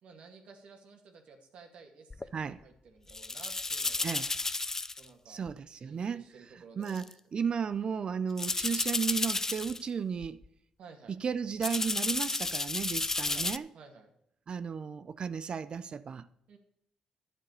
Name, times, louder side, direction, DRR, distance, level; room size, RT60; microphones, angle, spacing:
voice 1, 0.0-4.3 5.0-5.4 5.8-7.1 10.8-11.2 13.3-13.5 13.7-14.1 16.5-16.6, right 5 dB, 70° right, 2.3 m, -54 dB
sound 1, 2.1-2.3 3.1-5.0 5.5-5.6 6.9-7.1 8.4-9.9 10.2-10.5 11.6-13.6, left 3 dB, 20° left, 0.5 m, -32 dB
voice 2, 5.3-6.2 6.8-10.4 11.1-13.7 14.5-16.3, right 6 dB, 50° right, 0.5 m, -34 dB
11.0 x 7.2 x 6.7 m
cardioid pair, 70°, 2 cm